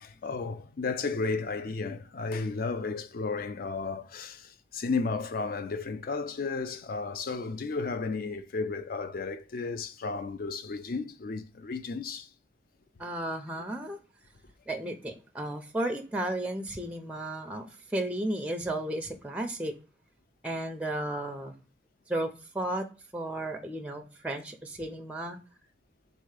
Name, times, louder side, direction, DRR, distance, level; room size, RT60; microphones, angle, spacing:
voice 1, 0.0-12.3, left 4 dB, 50° left, 0.4 m, -33 dB
voice 2, 13.0-14.0 14.7-19.7 20.4-21.5 22.1-22.9 23.1-25.4, right 1 dB, 5° right, 0.4 m, -34 dB
3.8 x 2.7 x 4.7 m
head